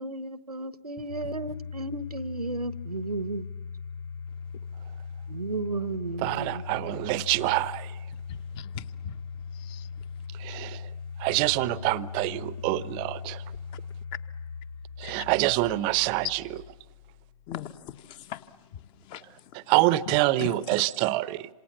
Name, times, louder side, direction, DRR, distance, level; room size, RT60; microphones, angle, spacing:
voice 1, 0.0-3.5 5.3-6.6, right 2 dB, 85° right, 1.2 m, -33 dB
Domestic sounds home sounds, 1.1-18.0, left 5 dB, 45° left, 0.9 m, -40 dB
voice 2, 6.2-7.9 10.4-10.8 11.2-13.4 15.0-16.4 19.7-21.5, right 18 dB, 25° right, 0.8 m, -26 dB
voice 3, 8.3-9.2 9.5-9.9 15.0-15.3 17.5-19.6 20.1-20.5, left 11 dB, 25° left, 1.1 m, -41 dB
27.5 x 27.0 x 7.2 m
figure-of-eight pair, 120°, 19 cm